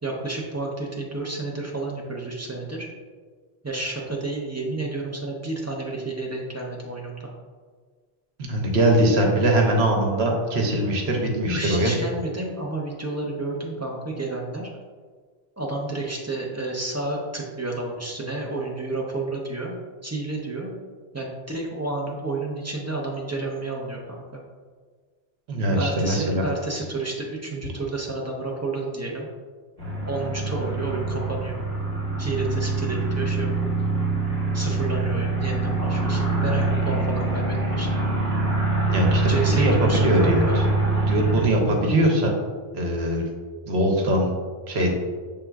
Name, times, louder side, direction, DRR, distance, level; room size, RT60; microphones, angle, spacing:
voice 1, 0.0-2.9 3.6-7.3 11.4-14.7 15.6-19.7 20.0-20.7 21.1-24.4 25.8-29.3 30.1-31.5 32.2-33.7 34.5-37.9 39.3-40.6, right 2 dB, 20° right, -2 dB, 0.5 m, -30 dB
voice 2, 8.4-11.9 25.5-26.5 38.9-40.6 41.1-42.3 42.7-43.3 43.7-44.3 44.7-44.9, right 1 dB, 80° right, 1 dB, 1.0 m, -21 dB
sound 1, 29.8-41.4, right 3 dB, 35° right, 1.5 m, -24 dB
5.9 x 3.6 x 2.3 m, 1.5 s
omnidirectional pair, 1.1 m